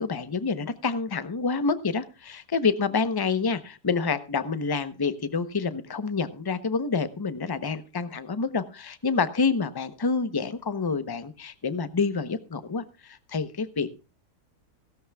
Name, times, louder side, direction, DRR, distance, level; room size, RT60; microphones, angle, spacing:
voice 1, 0.0-13.9, left 4 dB, 25° left, 12 dB, 0.5 m, -28 dB
17.0 x 16.5 x 2.3 m, 0.31 s
omnidirectional pair, 1.6 m